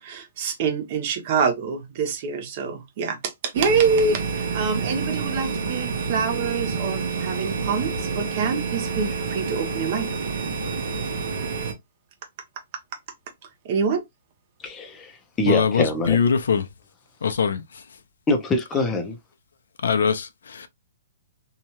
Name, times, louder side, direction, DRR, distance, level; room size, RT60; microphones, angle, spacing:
voice 1, 0.0-10.1 13.6-14.0, right 5 dB, 35° right, 0.6 m, -26 dB
sound 1, 3.5-11.7, right 5 dB, 60° right, 0.9 m, -28 dB
voice 2, 14.6-16.2 18.3-19.2, left 2 dB, 10° left, 0.5 m, -24 dB
voice 3, 15.4-16.7 17.2-17.8 19.8-20.7, left 6 dB, 80° left, 0.5 m, -22 dB
2.8 x 2.2 x 2.9 m
hypercardioid pair, 165°, 0 cm